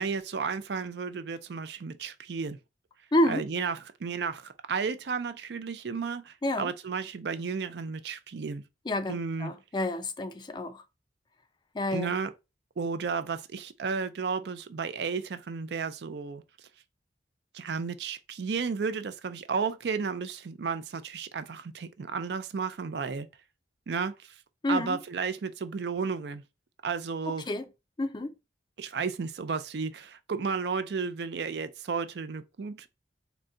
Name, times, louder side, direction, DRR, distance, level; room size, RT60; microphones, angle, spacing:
voice 1, 0.0-2.6 3.3-8.6 9.1-9.5 11.9-12.3 12.8-16.4 17.5-23.3 23.9-24.3 24.7-26.4 26.8-27.4 28.8-32.9, right 5 dB, 65° right, 0.4 m, -33 dB
voice 2, 3.1-3.4 6.4-6.7 8.9-10.8 11.7-12.1 24.6-25.0 27.5-27.7 28.0-28.3, left 1 dB, 25° left, 0.4 m, -29 dB
3.9 x 2.2 x 3.7 m
head